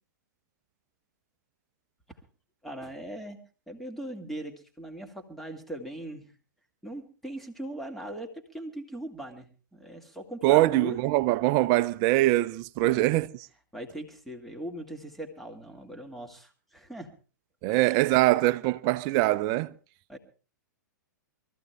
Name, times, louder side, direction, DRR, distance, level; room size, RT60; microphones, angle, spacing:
voice 1, 2.6-3.4 3.7-6.3 6.8-11.0 12.8-13.1 13.7-17.1 17.7-17.9 20.1-20.2, right 1 dB, ahead, 2.4 m, -40 dB
voice 2, 10.4-13.3 17.6-19.7, right 17 dB, 40° right, 0.7 m, -23 dB
22.5 x 14.5 x 3.4 m
figure-of-eight pair, 105°, 10 cm